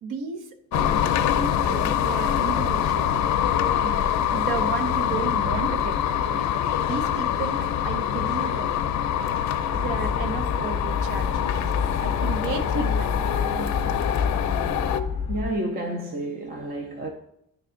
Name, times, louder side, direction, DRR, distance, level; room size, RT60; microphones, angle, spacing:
voice 1, 0.0-1.0 1.3-3.3 3.8-4.0 4.3-6.6 6.9-8.7 9.7-14.0, right 5 dB, 75° right, 0.8 m, -33 dB
sound 1, 0.7-15.0, left 9 dB, 65° left, 0.5 m, -25 dB
sound 2, 9.7-15.5, left 6 dB, 20° left, 0.6 m, -29 dB
voice 2, 15.3-17.1, right 1 dB, 30° right, 0.5 m, -30 dB
9.6 x 3.3 x 3.8 m
cardioid pair, 165°, 31 cm